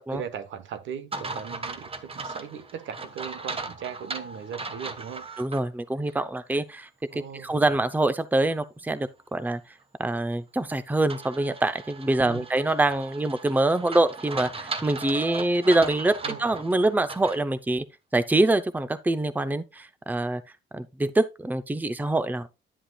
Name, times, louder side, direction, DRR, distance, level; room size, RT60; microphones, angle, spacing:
voice 1, 0.1-5.3 7.1-7.6 12.2-12.5 16.2-16.4, right 8 dB, 75° right, 1.1 m, -38 dB
sound 1, 1.1-5.6 6.1-6.2 11.1-17.4, right 3 dB, 30° right, 1.1 m, -37 dB
voice 2, 5.4-9.6 10.0-16.1 16.4-17.8 18.1-20.4 20.7-22.5, right 2 dB, 10° right, 0.6 m, -25 dB
10.0 x 7.7 x 2.3 m
cardioid pair, 90°, 20 cm